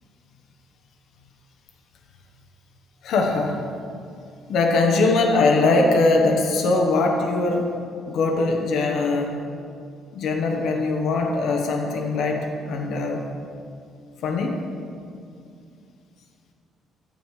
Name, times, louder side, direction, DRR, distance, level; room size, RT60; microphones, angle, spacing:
voice 1, 3.0-3.6 4.5-7.7 8.1-9.4 10.1-13.2 14.2-14.6, left 3 dB, 65° left, 2 dB, 1.1 m, -21 dB
13.0 x 7.3 x 4.9 m, 2.5 s
cardioid pair, 150°, 0 cm